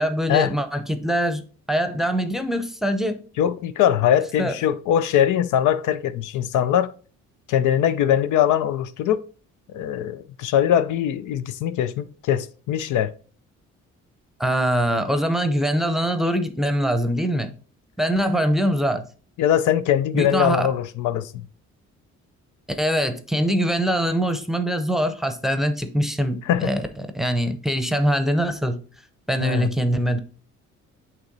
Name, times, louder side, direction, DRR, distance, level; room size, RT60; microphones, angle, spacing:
voice 1, 0.0-1.4 1.7-3.2 4.4-4.5 14.4-17.5 18.0-19.1 20.1-20.7 22.7-26.8 27.1-28.8 29.3-30.2, equal, ahead, 0.7 m, -23 dB
voice 2, 3.4-6.9 7.5-9.2 9.7-13.1 19.4-21.4 26.5-26.7 29.4-29.7, left 10 dB, 80° left, 0.5 m, -21 dB
8.2 x 3.1 x 3.9 m
cardioid pair, 90°, 30 cm